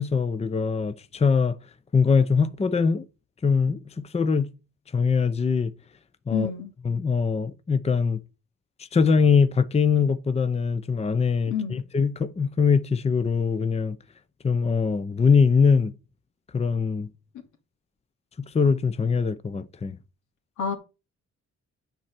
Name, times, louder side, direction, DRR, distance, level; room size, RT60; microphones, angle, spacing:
voice 1, 0.0-1.6 1.9-3.0 3.4-4.5 4.9-5.7 6.3-6.5 6.8-8.2 8.8-14.0 14.4-15.9 16.5-17.1 18.4-20.0, left 5 dB, 20° left, 0.7 m, -22 dB
voice 2, 6.3-6.7 11.5-11.8 20.6-20.7, left 7 dB, 90° left, 2.5 m, -28 dB
9.4 x 4.3 x 7.5 m
cardioid pair, 110°, 29 cm